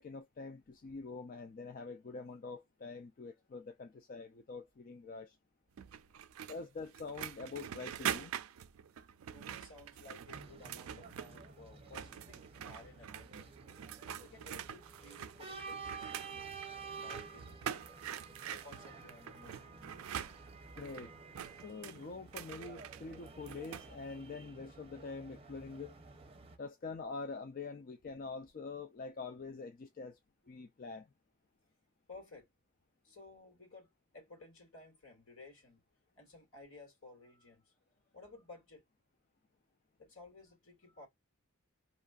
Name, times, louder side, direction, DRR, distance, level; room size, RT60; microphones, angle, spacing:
voice 1, 0.0-5.4 6.5-8.3 20.8-21.1 21.6-25.9 26.6-30.2 30.5-31.1, left 4 dB, 40° left, 0.3 m, -45 dB
sound 1, 5.8-11.5 11.8-23.9, right 9 dB, 80° right, 0.4 m, -45 dB
voice 2, 9.3-13.5 14.2-17.9 18.5-19.6 32.1-32.5 33.0-35.8 36.2-37.7 38.1-38.8 40.0-41.1, left 3 dB, 75° left, 2.0 m, -56 dB
sound 2, 10.3-26.6, right 4 dB, 25° right, 0.6 m, -51 dB
2.8 x 2.5 x 2.3 m
head